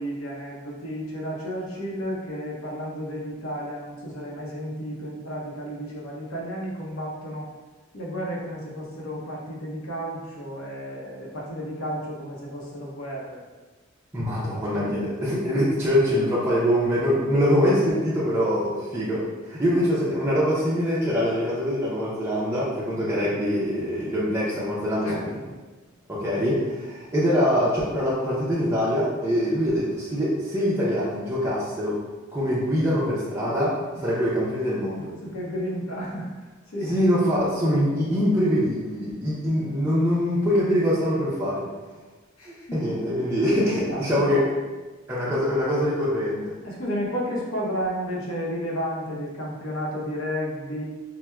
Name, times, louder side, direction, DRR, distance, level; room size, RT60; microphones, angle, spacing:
voice 1, 0.0-7.5 7.9-13.4 14.4-15.6 23.0-23.4 25.0-25.6 33.9-34.2 35.2-37.0 42.4-43.0 43.6-44.4 45.2-45.4 46.6-50.8, equal, 75° left, -3 dB, 0.7 m, -33 dB
voice 2, 14.1-25.4 26.1-32.0 32.3-35.1 36.9-41.6 42.5-44.4 45.1-46.5, equal, 10° right, -9 dB, 0.5 m, -24 dB
4.3 x 2.1 x 2.3 m, 1.3 s
head